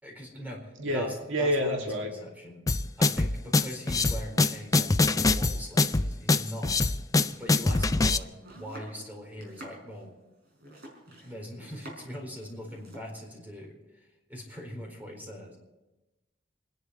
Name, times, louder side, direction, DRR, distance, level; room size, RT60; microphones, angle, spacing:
voice 1, 0.0-2.7 3.0-6.8 7.3-10.1 11.1-15.6, equal, 10° right, 0 dB, 4.4 m, -42 dB
voice 2, 0.8-2.1, equal, 85° right, 2 dB, 1.9 m, -28 dB
sound 1, 2.7-8.2, left 3 dB, 20° left, 0.4 m, -24 dB
Domestic sounds home sounds, 7.4-12.2 12.5-13.1, right 1 dB, 55° right, 5.3 m, -48 dB
27.5 x 10.5 x 4.8 m, 1.0 s
head